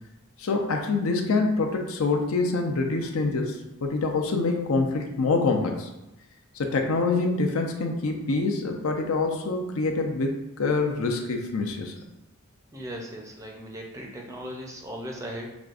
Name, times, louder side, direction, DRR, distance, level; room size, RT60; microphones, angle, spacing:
voice 1, 0.4-5.9 6.6-11.9, left 3 dB, 65° left, 3 dB, 0.5 m, -26 dB
voice 2, 12.7-15.5, equal, 15° right, 0 dB, 0.5 m, -37 dB
6.1 x 2.3 x 2.5 m, 0.92 s
head